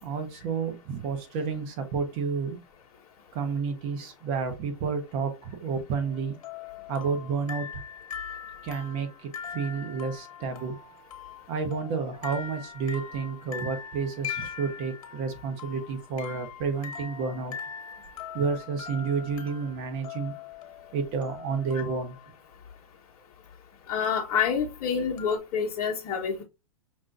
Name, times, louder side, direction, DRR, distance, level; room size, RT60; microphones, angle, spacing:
voice 1, 0.0-2.6 3.3-6.4 6.9-7.7 8.6-10.8 11.5-17.5 18.3-20.3 20.9-22.2, right 5 dB, 40° right, 1.0 m, -30 dB
sound 1, 5.9-22.4 24.0-24.6 25.2-25.4, left 7 dB, 65° left, 0.9 m, -42 dB
voice 2, 23.9-26.4, left 7 dB, 35° left, 1.0 m, -27 dB
5.3 x 2.6 x 2.5 m
hypercardioid pair, 125°, 18 cm